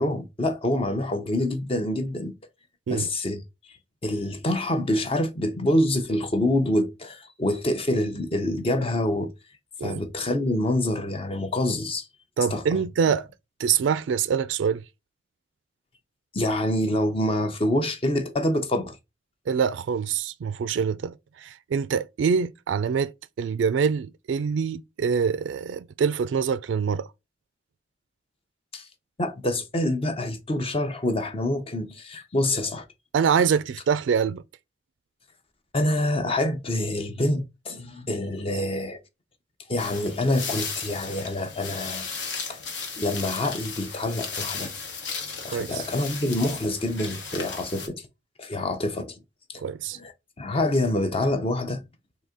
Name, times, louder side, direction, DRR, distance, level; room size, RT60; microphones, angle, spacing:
voice 1, 0.0-2.3 2.9-3.4 4.0-9.3 9.8-12.1 12.5-12.8 16.3-19.0 28.7-28.9 29.2-32.8 35.7-39.0 39.7-42.1 42.5-42.6 43.0-44.7 45.4-48.1 48.4-49.1 49.5-49.6 49.9-50.1 50.4-51.8, left 1 dB, 30° left, 0.7 m, -26 dB
voice 2, 12.4-13.3 13.6-14.8 19.5-23.1 23.4-27.1 33.1-34.4 45.5-45.8 49.6-50.0, right 6 dB, 75° right, 0.3 m, -25 dB
sound 1, 39.8-47.9, left 5 dB, 70° left, 1.2 m, -35 dB
4.0 x 2.8 x 3.6 m
head